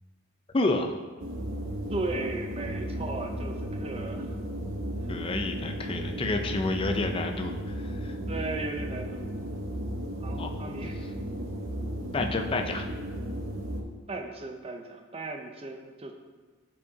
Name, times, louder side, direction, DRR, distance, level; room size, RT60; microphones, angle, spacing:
voice 1, 0.5-1.0 5.1-8.2 10.4-10.5 12.1-12.9, left 2 dB, 25° left, 4 dB, 0.4 m, -29 dB
sound 1, 1.2-13.8, equal, 65° right, 0.8 m, -35 dB
voice 2, 1.9-4.3 6.4-6.6 8.3-9.3 10.2-11.0 14.1-16.1, right 2 dB, 30° right, 4 dB, 0.6 m, -36 dB
9.7 x 4.9 x 2.7 m, 1.4 s
head